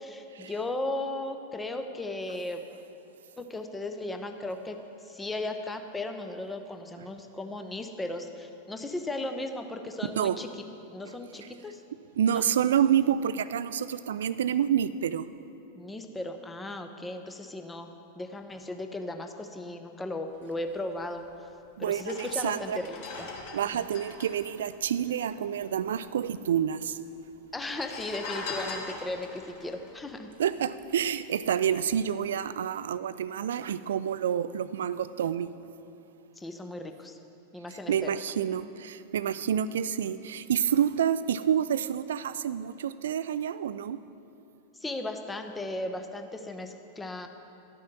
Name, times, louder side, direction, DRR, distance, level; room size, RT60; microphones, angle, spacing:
voice 1, 0.0-2.6 3.4-4.8 5.0-10.5 10.9-11.8 12.3-12.4 15.8-17.9 18.2-21.2 21.8-23.3 23.7-23.8 27.5-30.3 36.4-37.2 37.5-38.1 44.8-47.3, left 2 dB, 10° left, 6 dB, 0.8 m, -36 dB
voice 2, 10.0-10.4 11.0-11.2 12.2-15.3 21.8-22.8 23.5-27.0 30.4-35.5 37.7-44.0, right 9 dB, 60° right, 15 dB, 0.3 m, -28 dB
sound 1, 21.3-21.4 21.9-25.6 25.9-26.0 26.1-26.8 27.5-31.0 31.5-31.7, left 4 dB, 45° left, 1.5 m, -41 dB
12.0 x 7.2 x 6.1 m, 2.7 s
figure-of-eight pair, 90°, 0 cm